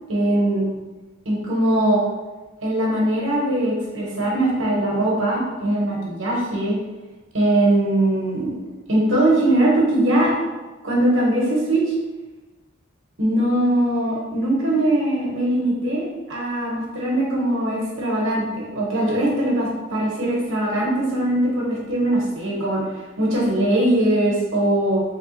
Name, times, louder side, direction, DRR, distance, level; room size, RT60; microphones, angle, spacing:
voice 1, 0.1-0.6 1.2-2.0 2.6-6.8 7.3-8.5 8.9-10.3 10.8-11.8 13.2-22.8 23.2-25.0, right 1 dB, 90° right, -4 dB, 1.2 m, -21 dB
3.5 x 3.2 x 3.2 m, 1.2 s
head